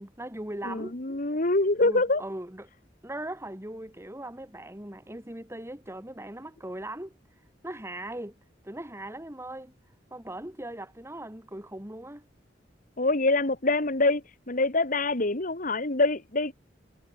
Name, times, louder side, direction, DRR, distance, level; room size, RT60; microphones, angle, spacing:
voice 1, 0.0-1.0 1.8-2.7 3.0-7.1 7.6-9.7 10.1-12.3, right 1 dB, 15° right, 3.6 m, -39 dB
voice 2, 0.6-2.2 13.0-16.5, left 2 dB, 50° left, 2.2 m, -25 dB
head